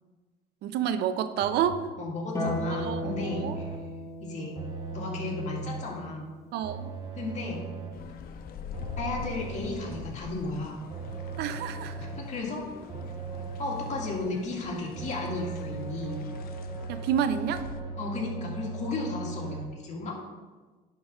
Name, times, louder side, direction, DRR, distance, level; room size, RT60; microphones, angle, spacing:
voice 1, 0.6-1.8 2.8-3.6 6.5-6.9 11.4-12.1 16.9-17.7, right 9 dB, 75° right, 11 dB, 0.6 m, -29 dB
sound 1, 1.4-1.9 2.4-4.0 4.5-6.0 6.6-8.1 8.7-10.2 10.9-12.4 12.9-14.3 14.9-19.7, right 4 dB, 25° right, 1.1 m, -39 dB
voice 2, 2.0-3.7 4.2-4.6 4.9-6.3 7.2-7.6 9.0-10.8 12.2-12.6 13.6-16.2 18.0-20.2, left 3 dB, 45° left, -2 dB, 2.0 m, -34 dB
Harp, 2.3-8.9 10.5-11.5, left 1 dB, 15° left, 1.5 m, -38 dB
sound 2, 7.9-17.8, left 7 dB, 60° left, 0.6 m, -44 dB
10.5 x 4.0 x 4.8 m, 1.3 s
cardioid pair, 110°, 17 cm